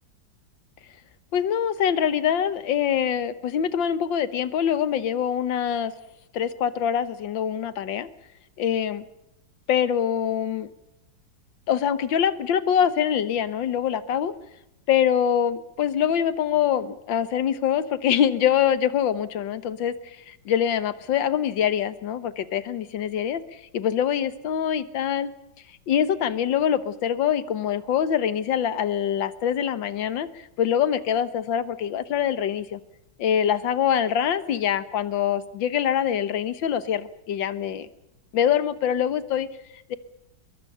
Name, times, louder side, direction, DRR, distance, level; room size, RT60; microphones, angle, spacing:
voice 1, 1.3-5.9 6.3-8.1 8.6-9.0 9.7-10.7 11.7-14.3 14.9-25.3 25.9-30.3 30.6-32.8 33.2-37.9 38.3-39.5 39.9-40.0, left 9 dB, 90° left, 13 dB, 1.8 m, -24 dB
23.5 x 22.0 x 5.6 m, 0.86 s
omnidirectional pair, 2.0 m